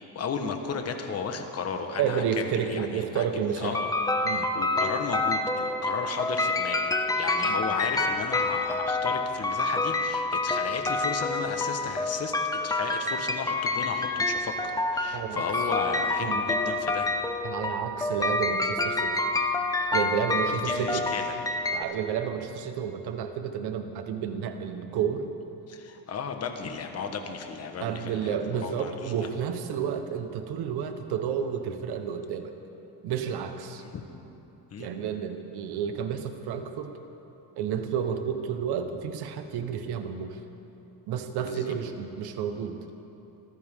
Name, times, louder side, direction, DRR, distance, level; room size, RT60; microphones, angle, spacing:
voice 1, 0.1-3.9 4.2-12.3 12.6-17.1 20.5-21.4 25.7-29.1 33.8-33.9 34.7-34.9 41.5-41.7, left 5 dB, 40° left, 5 dB, 1.4 m, -34 dB
voice 2, 2.0-3.8 4.2-4.5 7.4-7.6 15.1-15.4 16.2-16.4 17.4-19.2 19.9-21.1 21.7-25.3 27.8-32.5 33.0-33.8 34.8-37.0 37.6-40.4 41.1-42.8, right 7 dB, 80° right, 7 dB, 1.4 m, -31 dB
sound 1, 3.7-21.8, left 2 dB, 10° left, 0.8 m, -28 dB
25.0 x 15.0 x 3.8 m, 2.9 s
cardioid pair, 120°, 38 cm